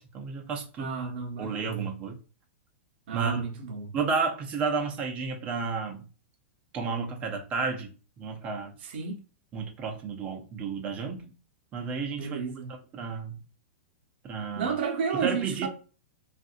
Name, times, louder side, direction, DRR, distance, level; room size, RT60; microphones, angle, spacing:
voice 1, 0.0-0.9 1.4-2.2 3.1-3.5 3.9-6.1 6.7-7.9 8.2-8.7 9.5-11.3 11.7-12.4 12.9-13.4 14.2-14.8 15.1-15.7, right 5 dB, 20° right, 0.5 m, -32 dB
voice 2, 0.8-1.9 3.1-3.9 8.8-9.2 12.2-12.7 14.6-15.7, right 5 dB, 50° right, 0.8 m, -32 dB
3.6 x 2.5 x 2.4 m
supercardioid pair, 170°, 7 cm